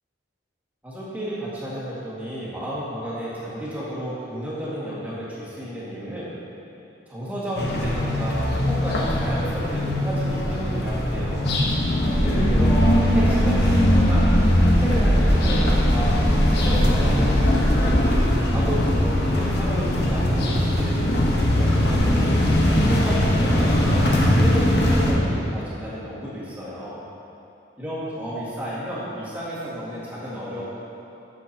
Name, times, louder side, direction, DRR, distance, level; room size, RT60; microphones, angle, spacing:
voice 1, 0.8-6.4 7.1-11.6 12.2-14.3 14.6-16.2 16.5-18.0 18.5-22.4 22.7-24.0 24.4-27.0 27.8-30.6, equal, 10° right, -9 dB, 1.8 m, -32 dB
sound 1, 7.6-25.1, left 1 dB, 60° left, 1.1 m, -21 dB
sound 2, 12.1-19.7, equal, 90° right, 1.6 m, -23 dB
12.5 x 6.6 x 2.9 m, 2.7 s
head